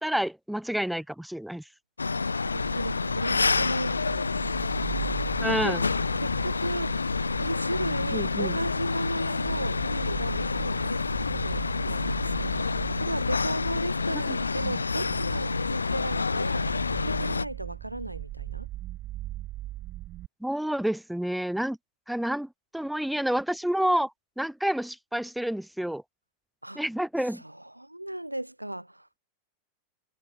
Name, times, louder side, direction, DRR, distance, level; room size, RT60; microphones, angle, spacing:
voice 1, 0.0-1.6 5.4-5.8 8.1-8.6 14.3-14.4 14.6-14.8 20.4-21.8 22.1-24.1 24.4-26.0 26.7-27.4, right 1 dB, ahead, 2.4 m, -29 dB
sound 1, 2.0-17.5, left 4 dB, 75° left, 2.9 m, -28 dB
voice 2, 2.0-4.4 5.5-5.8 6.2-7.0 7.3-16.7 17.0-18.7 26.6-26.8 27.3-29.1, right 1 dB, 85° right, 4.2 m, -35 dB
sound 2, 2.6-20.3, right 15 dB, 35° right, 5.0 m, -40 dB
figure-of-eight pair, 90°, 0 cm